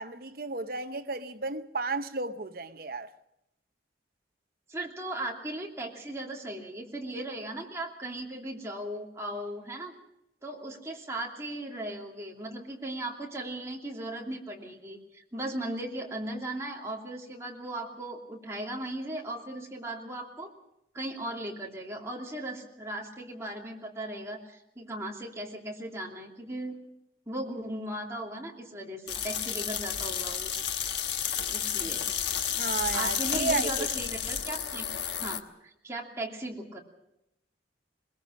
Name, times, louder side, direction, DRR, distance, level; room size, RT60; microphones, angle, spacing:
voice 1, 0.0-3.1 32.6-33.9, right 3 dB, 50° right, 0.8 m, -33 dB
voice 2, 4.7-9.9 10.4-20.5 20.9-26.8 27.3-30.5 31.5-32.1 32.6-34.8 35.2-36.8, right 1 dB, 15° right, 2.9 m, -37 dB
sound 1, 29.1-35.4, left 9 dB, 75° left, 1.2 m, -31 dB
21.5 x 21.5 x 6.4 m
head